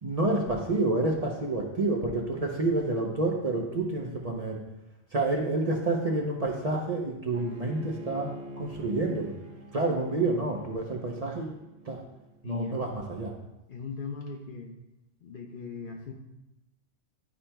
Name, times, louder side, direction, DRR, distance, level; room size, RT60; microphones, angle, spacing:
voice 1, 0.0-4.6 5.1-8.3 8.6-9.3 9.7-11.6 11.8-12.0 12.4-13.3, right 2 dB, 40° right, -1 dB, 0.7 m, -28 dB
Bowed string instrument, 7.3-12.4, equal, 65° right, 1.1 m, -45 dB
voice 2, 12.4-12.9 13.7-14.7 15.2-16.1, left 5 dB, 55° left, 1 dB, 0.7 m, -39 dB
11.0 x 4.3 x 2.2 m, 0.95 s
omnidirectional pair, 1.2 m